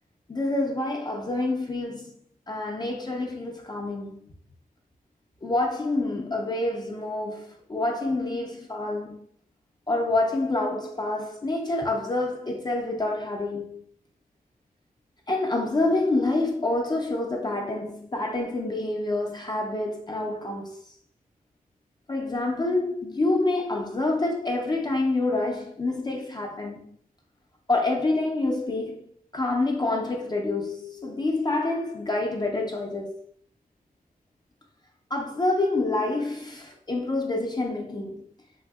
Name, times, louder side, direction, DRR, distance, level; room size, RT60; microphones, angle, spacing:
voice 1, 0.3-2.2 2.5-4.3 5.4-9.3 9.9-13.9 15.3-20.9 22.1-27.0 27.7-33.3 35.1-38.3, left 2 dB, 30° left, 0.4 m, -27 dB
3.3 x 2.6 x 2.3 m
wide cardioid pair, 100°, 15 cm